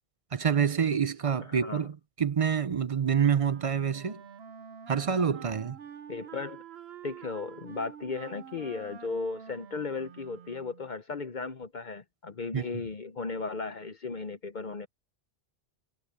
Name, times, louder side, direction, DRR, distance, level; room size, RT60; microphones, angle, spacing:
voice 1, 0.3-4.2 4.9-5.8 12.5-12.8, right 7 dB, 45° right, 0.5 m, -27 dB
voice 2, 1.5-1.9 6.1-6.6 7.0-14.9, left 4 dB, 50° left, 0.9 m, -36 dB
Wind instrument woodwind instrument, 3.4-10.9, right 8 dB, 75° right, 1.1 m, -47 dB
omnidirectional pair, 1.1 m